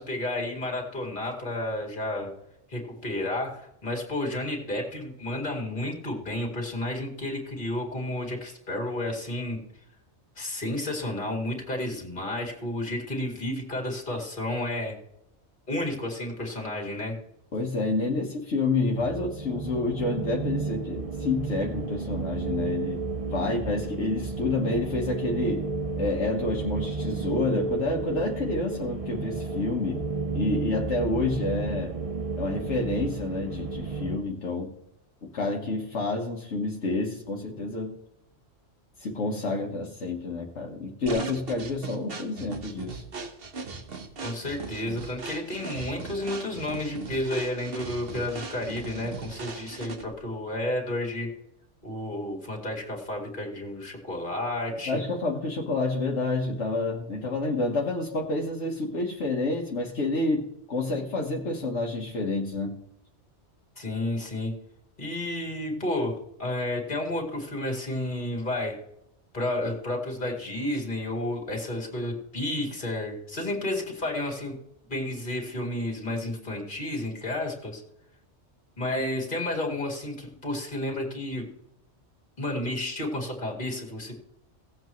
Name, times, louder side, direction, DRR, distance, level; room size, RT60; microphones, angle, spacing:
voice 1, 0.0-2.3 2.7-9.6 10.4-15.0 15.7-17.2 44.2-51.3 51.8-55.0 63.8-64.6 65.0-68.8 69.3-74.6 74.9-77.8 78.8-81.5 82.4-84.1, left 1 dB, 45° left, 0 dB, 2.5 m, -31 dB
voice 2, 17.5-23.0 23.2-25.6 26.0-30.0 30.3-31.9 32.3-34.7 35.2-37.9 39.0-43.0 54.9-62.8, left 3 dB, 75° left, -1 dB, 1.5 m, -29 dB
sound 1, 18.9-34.2, right 3 dB, 35° right, 0.8 m, -32 dB
sound 2, 41.1-50.2, right 4 dB, 55° right, 1.3 m, -39 dB
17.0 x 7.9 x 3.1 m, 0.82 s
omnidirectional pair, 1.2 m